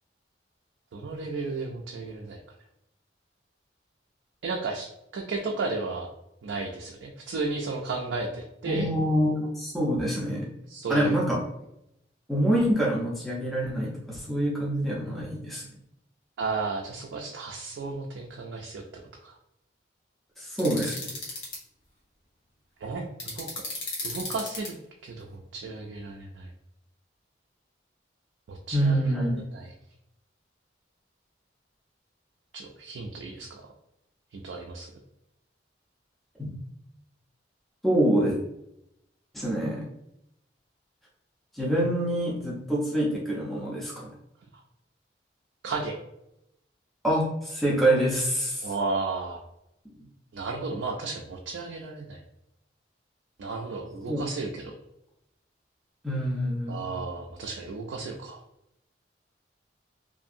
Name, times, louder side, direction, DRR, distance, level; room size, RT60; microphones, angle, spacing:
voice 1, 0.9-2.4 4.4-6.1 6.4-8.9 10.7-11.2 16.4-18.8 19.2-19.3 22.8-23.1 23.3-23.5 24.0-24.7 25.0-26.5 28.5-29.7 32.5-33.6 34.3-34.9 44.5-44.6 45.6-46.0 48.6-49.4 50.3-52.2 53.4-54.7 56.7-58.4, right 3 dB, 85° right, 0 dB, 0.4 m, -33 dB
voice 2, 8.7-10.5 10.9-11.4 12.3-15.6 20.4-21.1 28.7-29.4 36.4-36.5 37.8-38.4 39.3-39.9 41.5-44.1 47.0-48.7 54.1-54.2 56.0-56.9, right 1 dB, ahead, -5 dB, 0.5 m, -26 dB
sound 1, 20.6-21.6 23.2-24.7, left 2 dB, 85° left, 1.0 m, -34 dB
2.7 x 2.5 x 2.5 m, 0.82 s
head